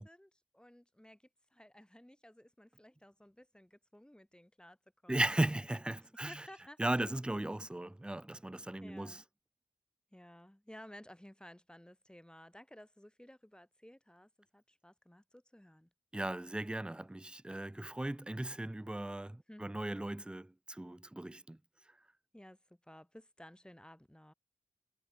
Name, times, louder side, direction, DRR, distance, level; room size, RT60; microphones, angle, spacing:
voice 1, 0.0-4.8 5.0-5.2 5.5-5.7 6.3-6.8 8.8-9.2 10.1-15.9 19.5-19.7 22.3-24.3, equal, 5° left, 4.6 m, -56 dB
voice 2, 5.1-6.4 6.8-9.2 16.1-21.6, right 1 dB, 10° right, 0.5 m, -37 dB
cardioid pair, 45°, 12 cm